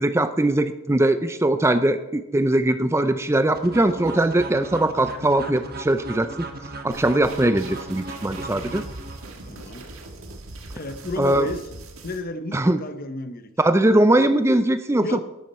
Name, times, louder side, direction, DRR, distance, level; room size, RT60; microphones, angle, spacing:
voice 1, 0.0-6.5 6.8-8.8 11.2-11.5 12.5-12.8 13.6-15.2, right 1 dB, 15° right, 11 dB, 0.5 m, -20 dB
sound 1, 3.5-9.5, right 2 dB, 45° right, 1.2 m, -36 dB
sound 2, 6.9-12.2, right 2 dB, 85° right, 1.6 m, -41 dB
voice 2, 9.5-9.9 10.7-11.6 12.0-13.5 15.0-15.2, left 1 dB, 45° left, 11 dB, 0.9 m, -32 dB
12.0 x 11.5 x 4.3 m, 0.96 s
head